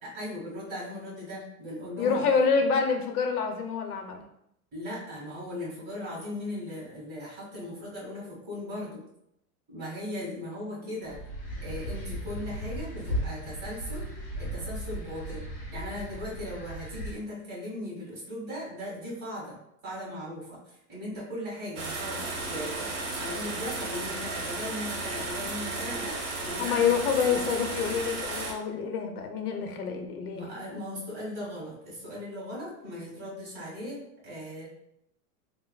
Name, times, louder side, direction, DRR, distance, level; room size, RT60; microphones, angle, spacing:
voice 1, 0.0-2.2 4.7-9.0 9.7-11.2 11.6-14.1 14.4-15.4 15.7-19.6 19.8-22.2 22.5-26.8 30.3-34.7, left 1 dB, 20° right, -6 dB, 1.4 m, -38 dB
voice 2, 2.0-4.2 26.6-30.5, left 6 dB, 85° left, 5 dB, 0.8 m, -27 dB
sound 1, 11.0-17.1, equal, 30° left, 0.8 m, -36 dB
sound 2, 21.8-28.5, right 2 dB, 55° right, 1.0 m, -34 dB
5.6 x 2.1 x 2.2 m, 0.78 s
supercardioid pair, 170°, 44 cm